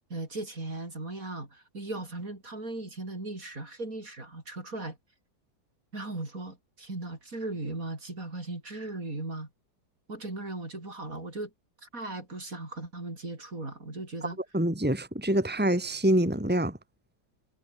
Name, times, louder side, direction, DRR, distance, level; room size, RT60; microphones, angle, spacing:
voice 1, 0.1-5.0 5.9-9.5 10.1-11.5 11.8-14.4, right 2 dB, 45° right, 5.4 m, -37 dB
voice 2, 14.5-16.8, right 1 dB, 5° right, 3.2 m, -25 dB
omnidirectional pair, 2.0 m